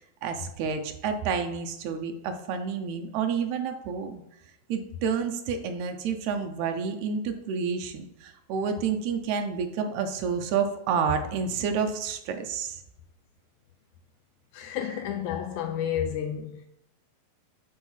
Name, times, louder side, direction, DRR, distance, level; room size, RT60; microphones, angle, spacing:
voice 1, 0.0-4.2 4.7-12.8, right 6 dB, 75° right, 1.8 m, -29 dB
voice 2, 14.5-16.7, left 9 dB, 85° left, 1.7 m, -31 dB
8.9 x 3.7 x 5.6 m
omnidirectional pair, 4.0 m